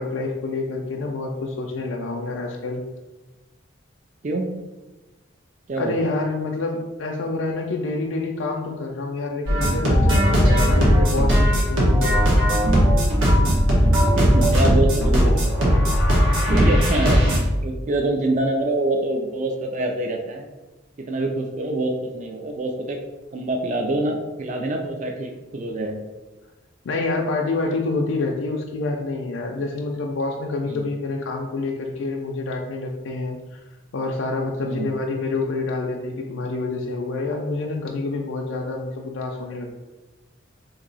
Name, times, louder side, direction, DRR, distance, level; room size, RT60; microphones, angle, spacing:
voice 1, 0.0-2.8 5.8-12.3 26.8-33.6 33.9-39.7, left 3 dB, 70° left, 0 dB, 0.4 m, -27 dB
voice 2, 4.2-4.5 5.7-6.0 14.1-15.8 16.5-17.2 17.6-20.5 21.0-23.0 23.3-26.0 30.7-30.8 34.6-34.9, right 2 dB, 35° right, 3 dB, 0.3 m, -25 dB
sound 1, 9.5-17.4, equal, 75° right, 1.1 m, -17 dB
2.9 x 2.6 x 3.9 m, 1.1 s
head